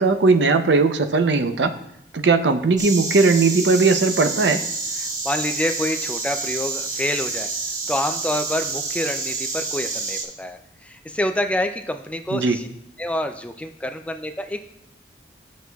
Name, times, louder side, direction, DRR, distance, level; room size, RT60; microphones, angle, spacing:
voice 1, 0.0-1.7 2.1-4.6 12.3-12.6, right 3 dB, 80° right, 8 dB, 0.6 m, -18 dB
Insect, 2.8-10.2, right 3 dB, 45° right, 1.2 m, -28 dB
voice 2, 5.0-7.5 7.9-12.7 13.0-14.6, left 1 dB, 5° left, 7 dB, 0.3 m, -27 dB
12.0 x 6.2 x 2.3 m, 0.79 s
head